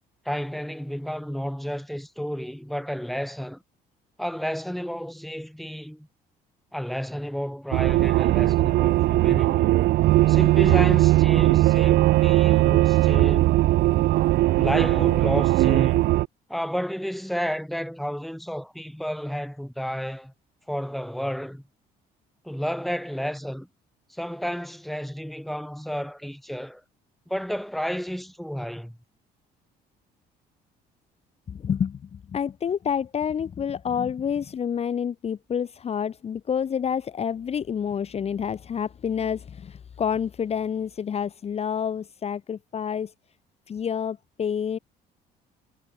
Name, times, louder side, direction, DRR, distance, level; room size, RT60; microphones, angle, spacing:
voice 1, 0.3-3.6 4.2-6.1 6.7-9.8 10.3-13.5 14.5-16.1 16.5-20.3 20.7-21.6 22.4-23.7 24.1-26.8 27.3-29.0, equal, ahead, 3.5 m, -31 dB
sound 1, 7.7-16.3, right 17 dB, 70° right, 0.6 m, -19 dB
voice 2, 31.5-43.1 43.7-44.8, left 7 dB, 40° left, 1.2 m, -28 dB
cardioid pair, 110°, 17 cm